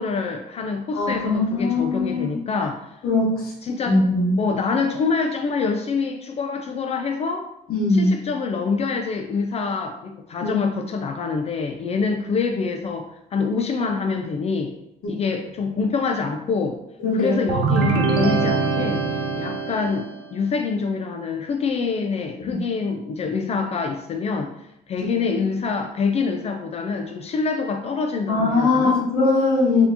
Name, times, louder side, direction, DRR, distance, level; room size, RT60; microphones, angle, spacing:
voice 1, 0.0-3.0 3.6-4.0 4.4-7.5 7.9-14.8 15.1-16.8 17.1-19.0 19.4-29.0, left 4 dB, 40° left, 4 dB, 0.4 m, -26 dB
voice 2, 0.9-2.4 3.0-3.5 3.9-4.4 7.7-8.1 10.4-10.6 15.0-15.1 17.0-17.4 22.5-22.6 28.3-29.9, left 3 dB, 60° left, -4 dB, 1.0 m, -20 dB
sound 1, 17.5-20.3, right 4 dB, 70° right, 0.5 m, -23 dB
4.1 x 2.8 x 2.7 m, 0.84 s
cardioid pair, 110°, 17 cm